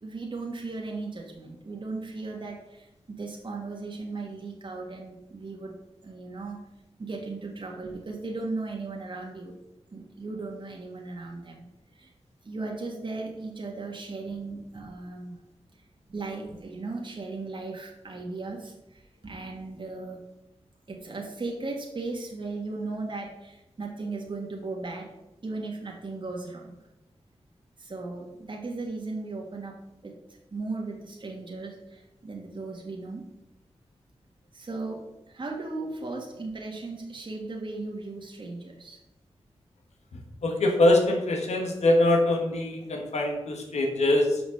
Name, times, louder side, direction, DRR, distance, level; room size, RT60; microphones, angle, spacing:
voice 1, 0.0-5.8 6.0-6.6 7.0-9.5 9.9-11.7 11.9-12.1 12.4-15.4 16.1-20.2 20.9-25.2 25.4-26.8 27.8-33.2 34.5-39.0, right 3 dB, 45° right, 0 dB, 1.4 m, -37 dB
voice 2, 40.4-44.4, left 1 dB, 90° left, 2 dB, 1.4 m, -23 dB
6.4 x 5.0 x 6.3 m, 0.94 s
cardioid pair, 60°, 11 cm